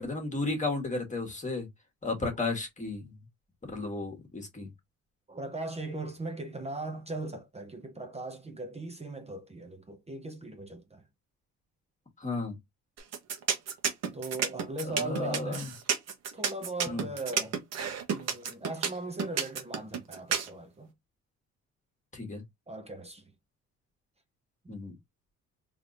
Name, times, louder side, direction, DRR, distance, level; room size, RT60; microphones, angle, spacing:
voice 1, 0.0-1.7 2.0-3.1 3.6-4.7 12.2-12.6 14.8-15.7 16.8-17.0 22.1-22.4 24.7-24.9, left 3 dB, 25° left, 1.5 m, -33 dB
voice 2, 5.3-11.0 14.1-15.7 16.3-17.6 18.1-20.9 22.7-23.2 24.6-24.7, right 2 dB, 20° right, 0.7 m, -39 dB
sound 1, 13.0-20.5, right 7 dB, 55° right, 1.0 m, -30 dB
3.4 x 3.1 x 2.5 m
cardioid pair, 90°, 30 cm